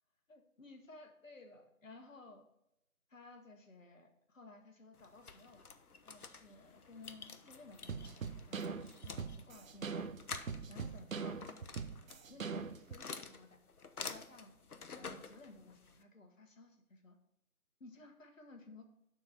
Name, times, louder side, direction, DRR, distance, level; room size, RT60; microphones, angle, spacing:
voice 1, 0.3-2.4 3.1-5.7 6.0-8.7 9.0-10.1 10.7-11.4 12.3-13.6 14.0-14.6 15.0-17.2 17.8-18.8, left 2 dB, 60° left, 4 dB, 1.4 m, -56 dB
sound 1, 4.9-16.0, left 5 dB, 80° left, 0.8 m, -50 dB
sound 2, 7.9-13.0, right 5 dB, 65° right, 0.6 m, -42 dB
7.1 x 4.0 x 5.8 m, 0.82 s
figure-of-eight pair, 160°, 44 cm